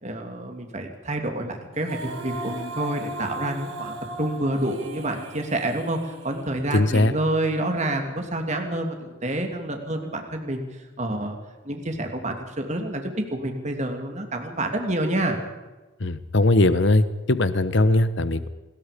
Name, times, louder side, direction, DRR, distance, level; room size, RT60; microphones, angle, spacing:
voice 1, 0.0-10.6 11.0-11.4 11.6-15.4, right 1 dB, 35° right, 4 dB, 2.8 m, -28 dB
Female singing, 1.7-6.9, right 1 dB, 80° right, 3.8 m, -37 dB
voice 2, 6.7-7.1 16.0-18.5, left 2 dB, 60° left, 13 dB, 1.2 m, -20 dB
27.5 x 21.5 x 5.3 m, 1.2 s
head